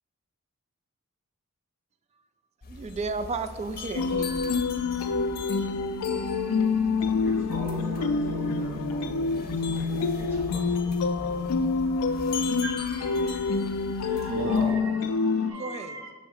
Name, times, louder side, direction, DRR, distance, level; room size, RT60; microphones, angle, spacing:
sound 1, 2.6-14.7, left 5 dB, 45° left, 0.6 m, -41 dB
voice 1, 2.7-4.6 15.5-16.1, right 4 dB, 30° right, 11 dB, 0.3 m, -34 dB
sound 2, 4.0-15.5, left 4 dB, 85° left, 0.4 m, -27 dB
voice 2, 7.1-11.7, equal, 10° right, -7 dB, 1.6 m, -41 dB
voice 3, 12.6-13.6 14.0-16.1, right 2 dB, 80° right, 0 dB, 1.1 m, -37 dB
5.7 x 3.1 x 5.5 m, 1.3 s
head